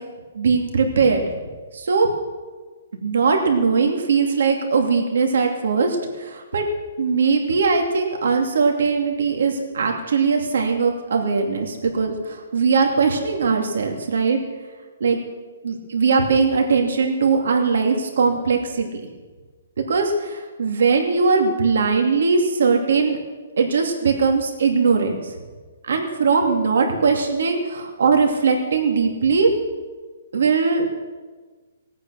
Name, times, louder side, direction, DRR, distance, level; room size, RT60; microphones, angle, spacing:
voice 1, 0.3-1.3 1.7-2.1 2.9-6.6 7.0-14.4 15.0-15.2 15.6-18.9 19.9-23.2 23.6-25.1 25.8-29.5 30.3-30.9, right 5 dB, 70° right, 3 dB, 2.6 m, -20 dB
18.5 x 8.9 x 6.5 m, 1.4 s
hypercardioid pair, 170°, 0 cm